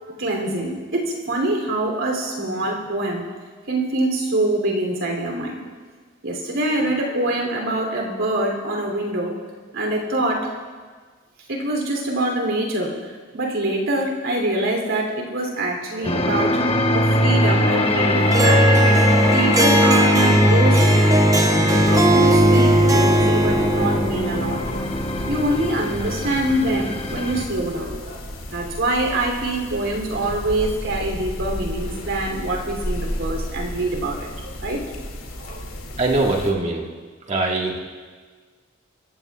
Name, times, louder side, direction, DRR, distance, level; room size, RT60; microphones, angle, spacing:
voice 1, 0.0-3.2 3.7-5.6 6.2-9.3 9.7-10.5 11.5-16.6 16.9-18.7 19.0-20.8 21.7-24.9 25.3-34.3 34.6-34.8 35.4-35.7, right 1 dB, 75° right, 1 dB, 3.1 m, -25 dB
sound 1, 16.0-27.5, equal, 30° left, 1.1 m, -19 dB
Harp, 18.3-24.1, right 1 dB, 15° right, 0.7 m, -20 dB
sound 2, 21.8-36.5, equal, 85° left, 2.4 m, -33 dB
voice 2, 36.0-36.9 37.3-37.8, right 2 dB, 35° right, -1 dB, 1.7 m, -22 dB
29.0 x 15.0 x 2.4 m, 1.5 s
head